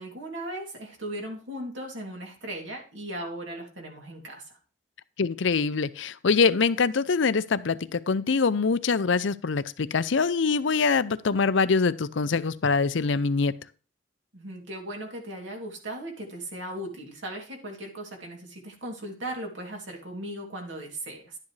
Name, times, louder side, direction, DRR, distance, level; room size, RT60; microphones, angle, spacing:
voice 1, 0.0-4.6 14.3-21.4, right 1 dB, 70° right, 0 dB, 2.8 m, -37 dB
voice 2, 5.2-13.6, left 4 dB, 70° left, 14 dB, 0.6 m, -24 dB
11.5 x 9.6 x 3.3 m, 0.37 s
head